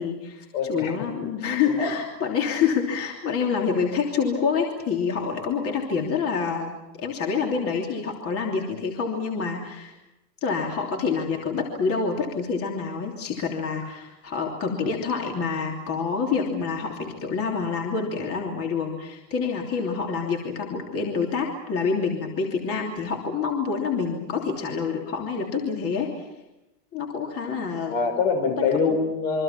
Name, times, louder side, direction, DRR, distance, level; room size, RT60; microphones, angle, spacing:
voice 1, 0.0-6.7 7.0-9.9 10.4-26.3 26.9-27.9 28.4-28.6, left 5 dB, 25° left, 0 dB, 3.1 m, -27 dB
voice 2, 0.5-1.1 1.8-1.9 27.9-29.4, left 4 dB, 60° left, 6 dB, 5.7 m, -24 dB
28.0 x 24.0 x 6.0 m, 0.96 s
supercardioid pair, 145°, 50 cm